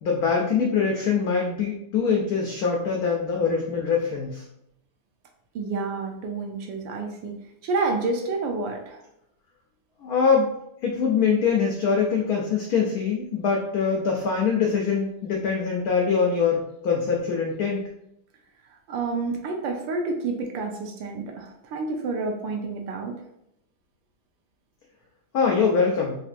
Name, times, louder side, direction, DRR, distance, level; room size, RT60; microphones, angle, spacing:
voice 1, 0.0-4.4 10.0-10.5 10.8-17.8 25.3-26.2, left 5 dB, 85° left, 0 dB, 0.8 m, -23 dB
voice 2, 5.5-7.4 7.6-9.0 18.9-23.1, right 3 dB, 75° right, 2 dB, 1.3 m, -29 dB
4.1 x 2.6 x 2.5 m, 0.79 s
omnidirectional pair, 2.2 m